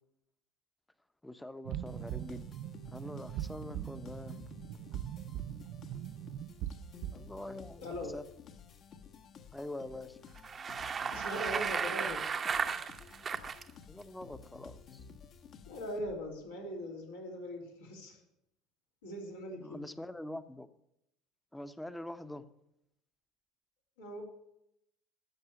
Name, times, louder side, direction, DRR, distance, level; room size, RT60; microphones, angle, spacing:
voice 1, 1.2-2.5 2.9-4.4 7.1-8.2 9.5-10.2 13.9-15.0 19.6-20.7 21.5-22.5, left 1 dB, 5° left, 0.9 m, -44 dB
sound 1, 1.7-7.3, right 12 dB, 50° right, 0.6 m, -41 dB
sound 2, 1.9-16.4, left 6 dB, 45° left, 1.3 m, -53 dB
voice 2, 7.8-8.2 11.1-12.3 15.7-18.2 19.0-19.8 24.0-24.2, equal, 75° left, 3.0 m, -41 dB
Bicycle, 10.4-13.6, right 6 dB, 30° right, 0.9 m, -34 dB
14.5 x 6.6 x 8.6 m
figure-of-eight pair, 65°, 0 cm